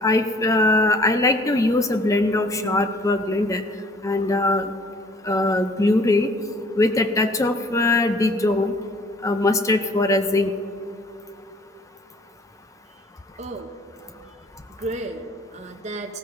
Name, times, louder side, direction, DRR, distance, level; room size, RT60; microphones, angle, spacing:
voice 1, 0.0-3.6 4.0-4.7 5.2-6.3 6.8-8.7 9.2-10.5, left 2 dB, 15° left, 8 dB, 0.4 m, -20 dB
voice 2, 13.4-13.7 14.7-16.2, right 2 dB, 35° right, 2 dB, 0.7 m, -33 dB
19.0 x 15.0 x 2.6 m, 2.7 s
head